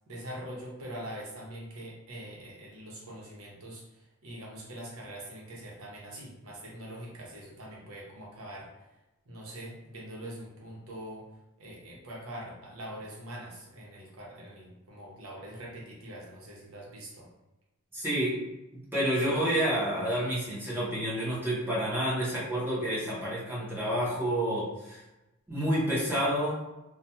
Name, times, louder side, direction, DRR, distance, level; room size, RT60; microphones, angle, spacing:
voice 1, 0.1-8.7 9.3-11.2 11.6-17.3, right 1 dB, 75° right, -3 dB, 0.8 m, -43 dB
voice 2, 17.9-18.4 18.7-25.0 25.5-26.7, equal, 10° right, -7 dB, 0.7 m, -29 dB
2.3 x 2.2 x 2.8 m, 0.97 s
head